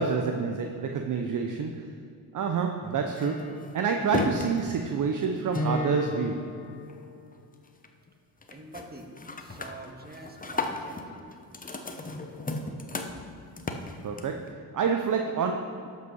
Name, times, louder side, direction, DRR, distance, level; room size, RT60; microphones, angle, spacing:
voice 1, 0.0-2.0 2.3-6.6 14.0-15.9, right 5 dB, 45° right, 4 dB, 0.8 m, -28 dB
sound 1, 2.8-7.3 7.7-8.1 8.4-8.8 9.2-14.5, left 2 dB, 20° left, 1.0 m, -35 dB
voice 2, 8.5-9.1 9.4-11.3 11.7-11.8, right 2 dB, 20° right, 2 dB, 1.7 m, -46 dB
12.0 x 5.5 x 5.4 m, 2.4 s
supercardioid pair, 55°, 45 cm